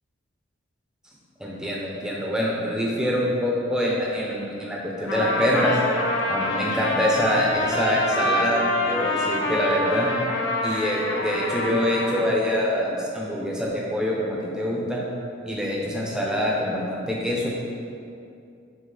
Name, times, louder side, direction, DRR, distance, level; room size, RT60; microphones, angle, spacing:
voice 1, 1.4-5.8 6.3-10.1 10.6-15.0 15.4-17.5, equal, 5° right, -4 dB, 0.8 m, -25 dB
Trumpet, 5.1-12.3, left 1 dB, 65° left, 0.8 m, -26 dB
7.7 x 3.2 x 4.0 m, 2.5 s
head